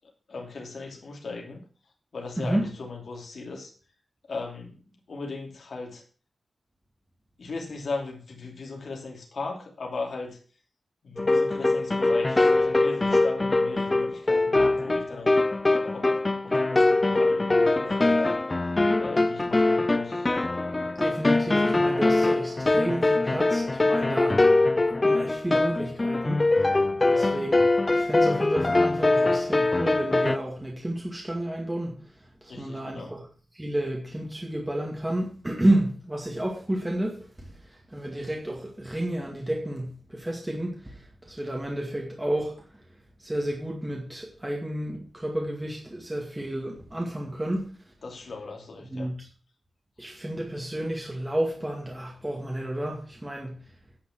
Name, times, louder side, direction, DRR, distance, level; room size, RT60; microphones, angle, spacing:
voice 1, 0.3-1.6 2.1-3.7 4.3-4.8 5.1-6.0 7.4-10.4 11.0-15.4 15.7-16.2 16.4-18.3 19.0-20.3 26.9-27.3 32.5-33.1 48.0-49.1, left 3 dB, 65° left, 2.9 m, -37 dB
voice 2, 2.4-2.7 19.4-19.5 21.0-24.6 24.8-26.8 27.1-32.0 32.4-33.3 33.5-42.7 43.2-47.7 48.9-49.3 50.0-53.6, right 1 dB, 10° right, 2.1 m, -31 dB
sound 1, 11.2-30.4, left 2 dB, 25° left, 0.5 m, -23 dB
10.0 x 6.0 x 7.6 m
wide cardioid pair, 145°, 0 cm